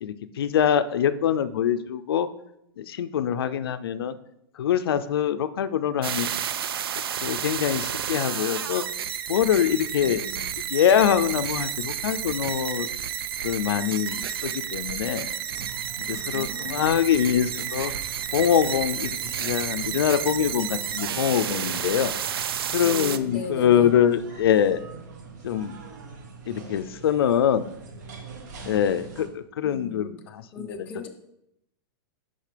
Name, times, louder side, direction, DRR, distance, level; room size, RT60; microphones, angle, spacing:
voice 1, 0.0-2.3 2.8-4.2 4.6-6.3 7.2-8.8 9.3-10.2 10.7-12.9 13.4-15.3 16.1-17.9 18.3-22.1 22.7-24.8 25.4-25.8 26.5-27.7 28.6-30.7, left 9 dB, 85° left, 12 dB, 0.4 m, -24 dB
sound 1, 6.0-23.2, right 9 dB, 75° right, 0.4 m, -31 dB
voice 2, 10.0-10.6 16.1-17.2 22.8-24.0 29.6-30.2 30.5-31.1, left 4 dB, 10° left, 2 dB, 0.4 m, -39 dB
sound 2, 15.5-29.3, right 4 dB, 50° right, 0.9 m, -44 dB
6.5 x 5.6 x 3.3 m, 0.80 s
supercardioid pair, 180°, 12 cm